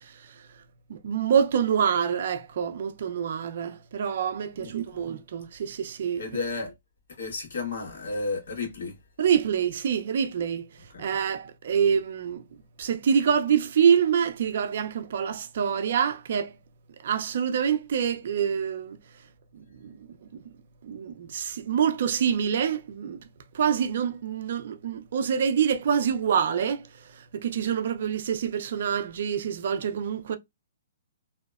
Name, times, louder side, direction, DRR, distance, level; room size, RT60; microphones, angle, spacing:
voice 1, 0.9-6.2 9.2-10.6 11.0-12.4 12.8-16.5 17.0-19.0 19.5-20.0 20.3-20.4 20.8-23.2 23.5-26.8 27.2-30.4, right 7 dB, 55° right, 0.4 m, -26 dB
voice 2, 4.6-5.1 6.2-6.7 7.2-9.0 10.9-11.0, left 3 dB, 70° left, 1.2 m, -33 dB
2.7 x 2.1 x 2.3 m
hypercardioid pair, 160°, 0 cm